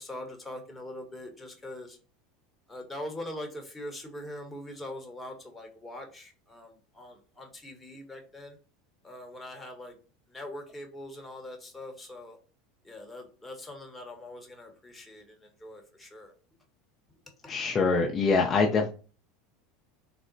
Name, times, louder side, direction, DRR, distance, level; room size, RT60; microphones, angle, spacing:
voice 1, 0.0-2.0 2.7-8.6 9.0-9.9 10.3-12.4 12.8-16.3 17.4-17.5, left 1 dB, 10° left, 2 dB, 1.0 m, -42 dB
voice 2, 17.5-18.9, left 4 dB, 35° left, 1 dB, 0.5 m, -24 dB
3.7 x 2.0 x 2.5 m, 0.36 s
hypercardioid pair, 100°, 0 cm